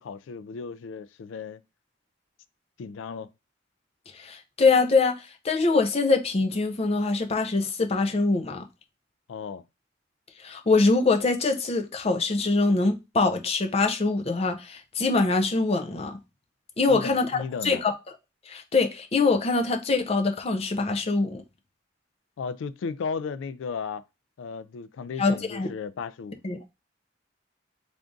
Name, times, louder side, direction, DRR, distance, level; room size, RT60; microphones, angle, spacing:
voice 1, 0.0-1.6 2.8-3.3 9.3-9.6 16.9-17.8 22.4-24.0 24.4-26.4, left 5 dB, 90° left, 0.3 m, -35 dB
voice 2, 4.2-8.7 10.4-16.2 16.8-17.3 17.6-17.9 18.5-21.4 25.2-25.7 26.4-26.6, left 3 dB, 35° left, 0.5 m, -24 dB
3.5 x 2.5 x 3.7 m
head